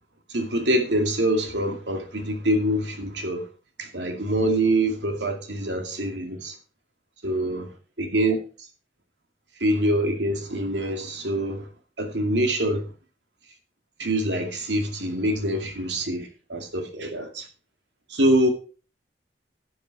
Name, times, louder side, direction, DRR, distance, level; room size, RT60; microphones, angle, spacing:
voice 1, 0.3-3.5 3.8-6.6 7.2-7.7 8.0-8.4 9.6-11.7 12.0-12.9 14.0-17.5 18.1-18.5, right 1 dB, 80° right, 2.3 m, -25 dB
12.0 x 7.3 x 4.7 m
head